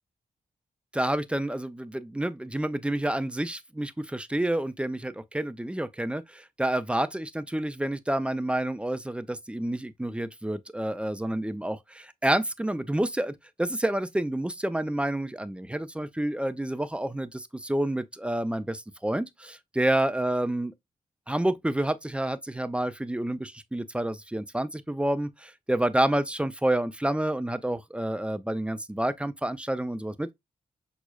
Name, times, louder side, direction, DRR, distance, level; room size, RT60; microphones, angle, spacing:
voice 1, 0.9-20.7 21.3-30.3, right 1 dB, 5° right, 0.4 m, -29 dB
6.0 x 2.0 x 2.3 m
supercardioid pair, 45°, 17 cm